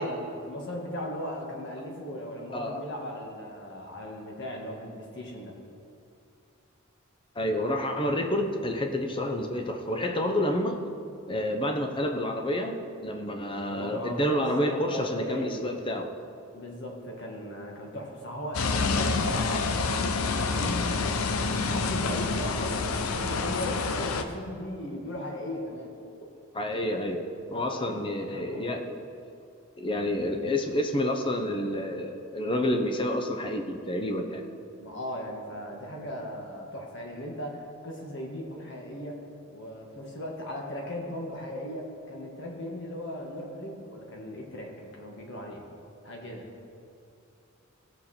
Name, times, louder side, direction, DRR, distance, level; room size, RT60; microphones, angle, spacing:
voice 1, 0.0-5.5 13.7-15.7 16.5-20.3 20.5-25.9 26.2-26.3 27.5-28.8 34.8-39.2 39.5-45.6 46.0-46.5, left 1 dB, 55° left, 0 dB, 1.7 m, -37 dB
voice 2, 2.5-2.8 7.4-10.8 11.3-16.1 26.5-29.0 29.8-34.4, left 1 dB, 25° left, 4 dB, 0.8 m, -29 dB
sound 1, 18.5-24.2, left 4 dB, 75° left, 0.7 m, -28 dB
16.5 x 6.7 x 4.4 m, 2.5 s
head